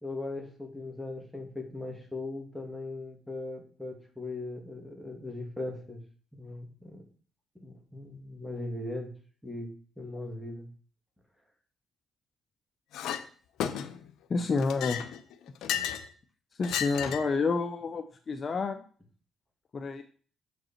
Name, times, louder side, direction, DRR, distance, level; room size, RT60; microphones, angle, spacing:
voice 1, 0.0-6.0 6.3-7.0 7.5-9.1 9.4-10.7, left 2 dB, ahead, 1 dB, 2.5 m, -39 dB
Chink clink, 12.9-13.2 13.6-14.1 14.6-16.1 16.6-17.4, left 10 dB, 85° left, 0.7 m, -33 dB
voice 2, 14.3-15.0 16.6-18.8 19.7-20.0, left 4 dB, 40° left, 7 dB, 0.7 m, -29 dB
7.5 x 5.3 x 4.4 m, 0.42 s
cardioid pair, 90°, 0 cm